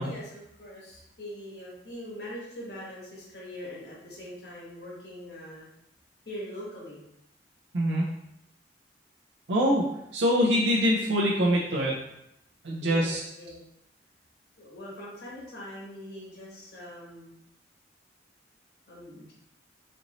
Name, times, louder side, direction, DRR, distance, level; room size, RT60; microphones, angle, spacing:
voice 1, 0.0-5.7 6.2-7.0 12.8-13.6 14.6-17.4 18.9-19.3, left 1 dB, 60° left, -5 dB, 1.2 m, -42 dB
voice 2, 7.7-8.1 9.5-9.8 10.1-12.0 12.6-13.2, equal, 85° right, -4 dB, 0.6 m, -24 dB
4.3 x 2.6 x 3.0 m, 0.81 s
head